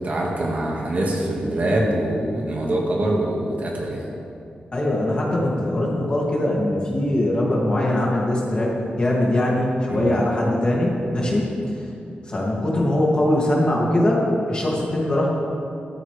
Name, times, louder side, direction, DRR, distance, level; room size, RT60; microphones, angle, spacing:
voice 1, 0.0-4.1 9.9-10.2 11.2-11.5, right 1 dB, 50° right, -2 dB, 2.0 m, -24 dB
voice 2, 4.7-11.5 12.3-15.3, left 1 dB, 30° left, -4 dB, 2.6 m, -21 dB
15.0 x 13.5 x 3.5 m, 2.6 s
wide cardioid pair, 145°, 3 cm